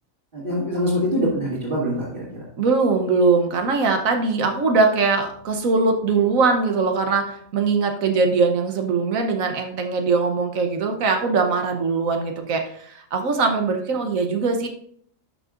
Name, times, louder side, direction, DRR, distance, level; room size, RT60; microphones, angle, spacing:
voice 1, 0.3-2.4, equal, 40° right, -9 dB, 2.6 m, -24 dB
voice 2, 2.6-14.7, right 4 dB, 80° right, 4 dB, 1.3 m, -21 dB
11.5 x 6.3 x 2.5 m, 0.63 s
omnidirectional pair, 1.4 m